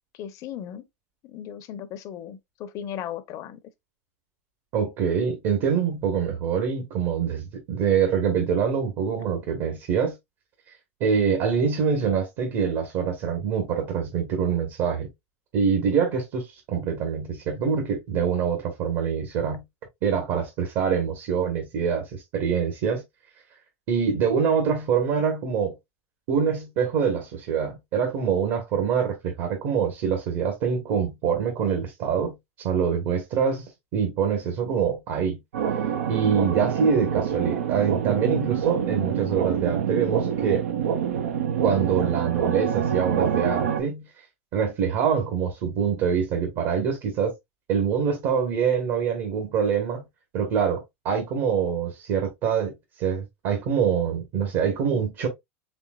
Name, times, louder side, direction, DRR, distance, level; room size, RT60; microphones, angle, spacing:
voice 1, 0.1-0.8 1.2-3.6, left 9 dB, 50° left, 0.7 m, -36 dB
voice 2, 4.7-10.1 11.0-15.1 15.5-19.6 20.0-23.0 23.9-25.7 26.3-33.6 33.9-35.4 36.1-40.7 41.6-44.1 44.5-47.3 47.7-50.0 50.3-55.3, right 7 dB, 60° right, 1.2 m, -25 dB
sound 1, 35.5-43.8, right 8 dB, 85° right, 0.6 m, -26 dB
4.3 x 3.4 x 2.3 m
hypercardioid pair, 95°, 7 cm